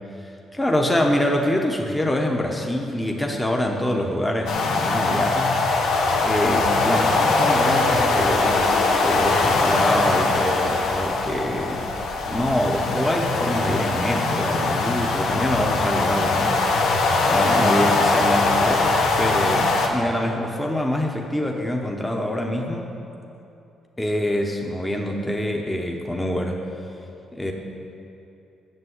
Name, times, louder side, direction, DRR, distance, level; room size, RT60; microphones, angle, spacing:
voice 1, 0.2-5.6 6.2-11.9 12.2-17.0 17.3-22.9 24.0-26.6 27.3-27.5, left 1 dB, 10° left, 1 dB, 1.0 m, -25 dB
sound 1, 4.5-19.9, left 3 dB, 85° left, 1.3 m, -21 dB
8.9 x 6.9 x 8.1 m, 2.8 s
cardioid pair, 90°, 0 cm